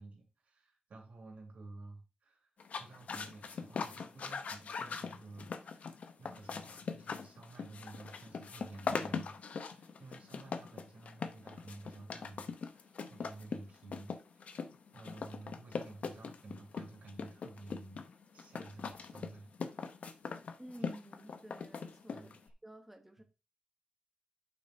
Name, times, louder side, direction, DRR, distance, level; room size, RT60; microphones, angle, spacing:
voice 1, 0.0-2.5 2.8-14.5 14.9-18.0 18.3-19.5 20.8-20.9 22.1-22.4, right 2 dB, 75° right, 3.1 m, -52 dB
sound 1, 2.6-22.5, left 5 dB, 75° left, 0.8 m, -41 dB
voice 2, 20.6-22.3 22.6-23.2, right 1 dB, 10° right, 0.9 m, -51 dB
8.9 x 7.2 x 2.7 m
wide cardioid pair, 120°, 2 cm